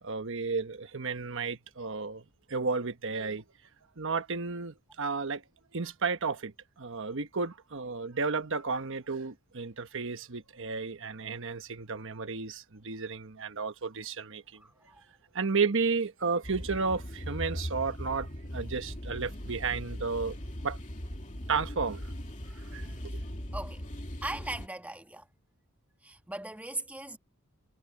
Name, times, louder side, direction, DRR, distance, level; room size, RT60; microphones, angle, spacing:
voice 1, 0.0-3.4 4.0-5.4 5.7-14.6 15.3-20.4 20.6-20.8 21.5-22.1 22.5-23.0, right 4 dB, 60° right, 1.2 m, -33 dB
voice 2, 14.6-15.0 23.1-23.2 23.5-23.8 24.2-25.3 26.0-27.2, right 1 dB, 5° right, 1.7 m, -39 dB
sound 1, 16.4-24.7, equal, 35° left, 2.5 m, -39 dB
head